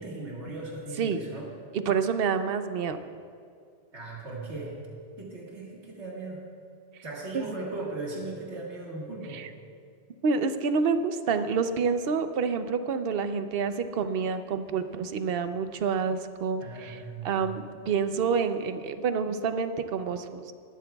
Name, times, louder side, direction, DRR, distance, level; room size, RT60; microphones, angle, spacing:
voice 1, 0.0-1.5 3.9-4.8 5.2-6.4 7.0-9.4 16.6-17.4, right 2 dB, 75° right, -3 dB, 2.0 m, -38 dB
voice 2, 1.7-3.0 7.3-7.4 9.3-9.5 10.2-17.0 17.2-20.5, right 5 dB, 60° right, 10 dB, 0.8 m, -28 dB
20.5 x 12.0 x 2.3 m, 2.2 s
omnidirectional pair, 1.2 m